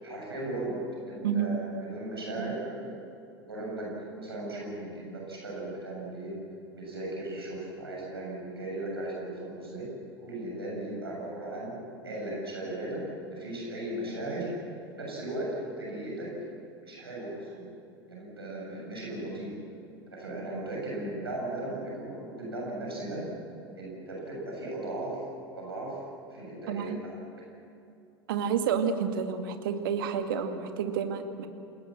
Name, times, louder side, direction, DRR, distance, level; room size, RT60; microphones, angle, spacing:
voice 1, 0.0-6.4 6.7-9.9 10.2-14.5 15.0-16.3 16.8-17.7 18.1-19.5 20.1-23.3 23.8-25.3 25.5-26.0 26.3-27.1, right 1 dB, 80° right, -3 dB, 7.1 m, -37 dB
voice 2, 1.2-1.6 2.3-2.5 26.7-27.0 28.3-31.5, right 7 dB, 60° right, 6 dB, 2.1 m, -29 dB
28.5 x 20.5 x 7.5 m, 2.7 s
figure-of-eight pair, 80°, 13 cm